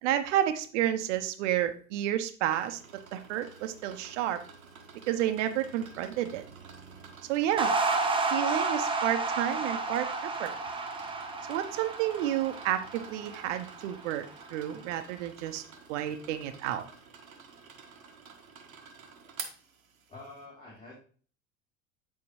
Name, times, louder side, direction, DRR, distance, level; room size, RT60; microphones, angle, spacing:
voice 1, 0.0-2.8 3.1-4.4 5.1-6.4 7.3-7.7 8.3-10.5 11.5-14.2 14.5-15.6 15.9-16.8, right 12 dB, 55° right, 9 dB, 0.9 m, -30 dB
sound 1, 2.4-20.4, right 5 dB, 75° right, 1.0 m, -50 dB
sound 2, 7.6-14.1, right 3 dB, 10° right, 0.9 m, -31 dB
voice 2, 20.1-21.0, left 2 dB, 15° left, -7 dB, 2.8 m, -47 dB
8.4 x 4.7 x 3.1 m, 0.42 s
figure-of-eight pair, 70°, 42 cm